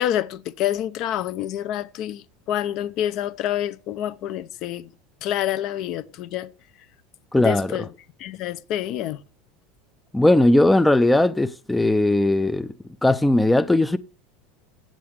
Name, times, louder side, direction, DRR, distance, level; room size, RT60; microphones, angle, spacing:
voice 1, 0.0-4.9 5.2-6.5 7.4-7.9 8.2-9.2, left 11 dB, 50° left, 0.7 m, -27 dB
voice 2, 7.3-7.8 10.1-12.7 13.0-14.0, left 1 dB, 5° left, 0.5 m, -18 dB
8.6 x 7.6 x 6.7 m
supercardioid pair, 135°, 0 cm